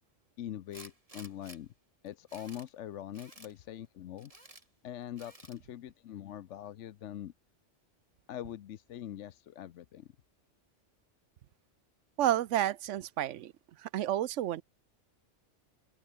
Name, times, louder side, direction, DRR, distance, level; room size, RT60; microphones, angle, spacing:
voice 1, 0.4-1.7 2.0-4.3 4.8-7.3 8.3-10.1, left 11 dB, 75° left, 1.0 m, -43 dB
Tools, 0.7-1.6 2.1-2.7 3.1-3.5 4.2-4.6 5.2-5.6, right 1 dB, 30° right, 3.5 m, -53 dB
voice 2, 12.2-13.5 13.8-14.6, right 12 dB, 85° right, 1.0 m, -30 dB
open air
omnidirectional pair, 1.2 m